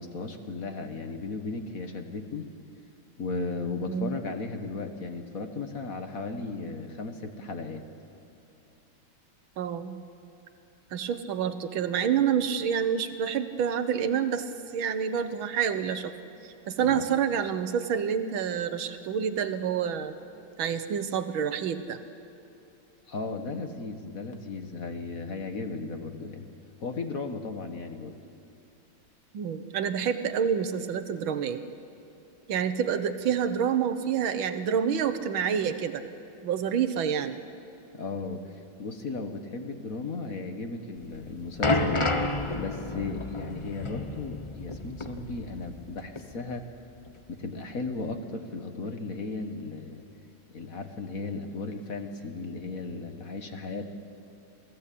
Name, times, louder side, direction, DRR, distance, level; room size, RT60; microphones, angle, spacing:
voice 1, 0.0-2.5 3.2-7.8 16.8-17.1 23.1-26.5 26.8-28.1 37.9-46.6 47.3-50.0 50.5-53.9, left 3 dB, 45° left, 6 dB, 1.7 m, -35 dB
voice 2, 3.8-4.1 9.6-10.0 10.9-14.5 14.7-16.1 16.4-20.1 20.6-22.0 29.3-31.6 32.5-36.0 36.4-37.4, right 8 dB, 80° right, 10 dB, 1.8 m, -28 dB
sound 1, 41.0-45.9 46.2-46.3 47.1-47.2, left 2 dB, 25° left, 0.6 m, -30 dB
27.5 x 17.5 x 8.5 m, 2.8 s
omnidirectional pair, 2.2 m